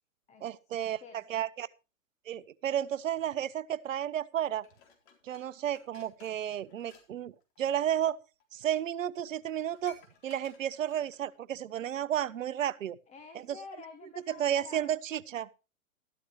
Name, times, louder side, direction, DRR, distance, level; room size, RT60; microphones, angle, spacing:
voice 1, 0.4-1.7 2.3-4.7 5.2-7.3 7.6-8.2 8.5-10.0 10.2-13.0 13.3-13.6 14.3-15.5, right 10 dB, 70° right, 0.9 m, -32 dB
Dishes pots and pans, 4.6-7.1 7.4-7.6 8.4-8.5 8.8-8.9 9.1-11.4 11.8-11.9, left 7 dB, 45° left, 4.0 m, -59 dB
voice 2, 13.1-15.0, left 5 dB, 15° left, 1.5 m, -49 dB
13.5 x 13.0 x 3.2 m
hypercardioid pair, 120°, 41 cm